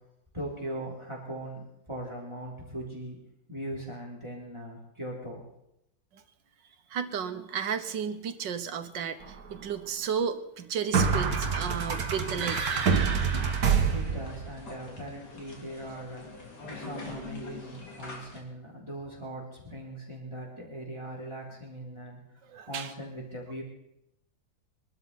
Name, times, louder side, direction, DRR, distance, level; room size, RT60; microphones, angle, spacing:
voice 1, 0.3-3.2 3.5-5.5 13.9-16.5 16.7-22.2 22.7-23.6, right 1 dB, 15° right, -3 dB, 3.5 m, -40 dB
voice 2, 6.9-12.9 22.5-22.9, right 7 dB, 80° right, 10 dB, 1.7 m, -33 dB
sound 1, 9.2-9.3 10.9-14.5, right 6 dB, 55° right, 1.9 m, -26 dB
sound 2, 11.3-18.4, left 3 dB, 65° left, 3.2 m, -45 dB
23.5 x 12.5 x 4.1 m, 0.80 s
omnidirectional pair, 1.9 m